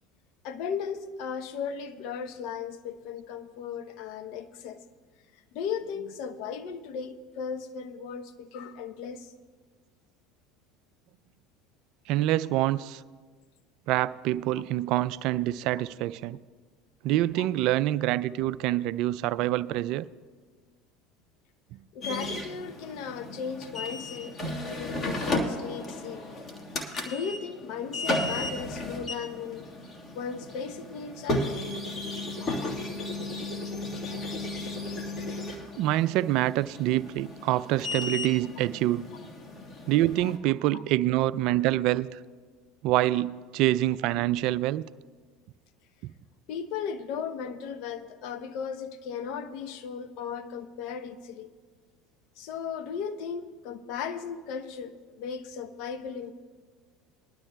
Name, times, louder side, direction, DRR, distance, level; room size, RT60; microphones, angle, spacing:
voice 1, 0.4-4.8 5.3-9.3 17.4-17.5 21.9-26.3 27.0-29.7 30.1-31.6 40.2-40.3 40.7-40.8 46.5-51.5 52.4-56.3, left 6 dB, 65° left, 0.8 m, -36 dB
voice 2, 12.1-13.0 13.9-16.4 17.0-20.1 21.7-21.8 35.8-39.1 39.9-42.2 42.8-44.8, right 15 dB, 65° right, 0.3 m, -26 dB
sound 1, 22.0-40.4, left 2 dB, 35° left, 1.6 m, -34 dB
21.0 x 12.0 x 2.3 m
hypercardioid pair, 80°, 0 cm